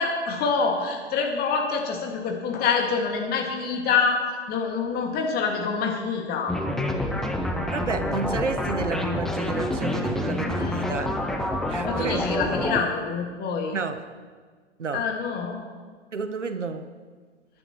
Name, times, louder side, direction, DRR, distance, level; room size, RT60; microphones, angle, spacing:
voice 1, 0.0-6.6 10.5-10.8 11.8-13.8 14.9-15.6, left 5 dB, 25° left, 2 dB, 2.0 m, -26 dB
sound 1, 6.5-12.8, left 1 dB, ahead, 0.4 m, -27 dB
voice 2, 7.7-11.3 11.7-12.4 13.7-14.0 14.8-15.0 16.1-16.9, right 4 dB, 80° right, 10 dB, 0.9 m, -31 dB
22.0 x 10.0 x 3.1 m, 1.5 s
figure-of-eight pair, 105°, 36 cm